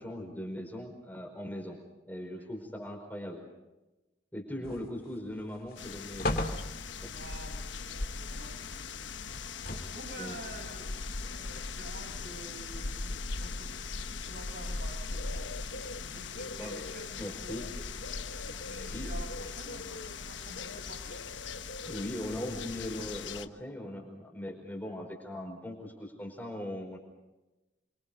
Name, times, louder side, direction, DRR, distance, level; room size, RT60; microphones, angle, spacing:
voice 1, 0.0-1.8 2.1-3.4 4.3-6.5 7.0-7.1 10.2-10.3 16.6-16.8 17.2-17.6 18.9-19.1 21.8-27.0, left 1 dB, 10° left, 1 dB, 4.9 m, -39 dB
sound 1, 4.6-5.2 5.6-5.7 6.2-7.2 9.3-10.1 10.9-11.0, left 1 dB, 50° left, 2.5 m, -35 dB
voice 2, 4.6-4.9 7.1-9.1 9.9-10.9 11.2-15.5 16.1-17.9 18.4-21.2, right 1 dB, 60° right, 3 dB, 6.7 m, -49 dB
sound 2, 5.8-23.5, left 4 dB, 85° left, 1.2 m, -39 dB
29.0 x 24.5 x 5.3 m, 1.0 s
head